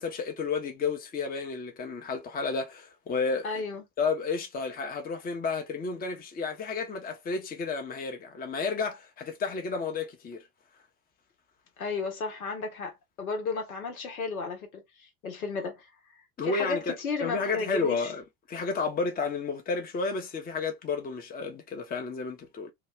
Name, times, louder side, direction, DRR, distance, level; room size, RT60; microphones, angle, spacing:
voice 1, 0.0-3.6 4.0-10.4 16.4-16.9 17.2-18.2 18.5-22.7, left 4 dB, 20° left, 0.8 m, -31 dB
voice 2, 3.4-3.8 11.8-18.1, left 4 dB, 75° left, 1.2 m, -34 dB
2.7 x 2.3 x 3.1 m
figure-of-eight pair, 70°, 43 cm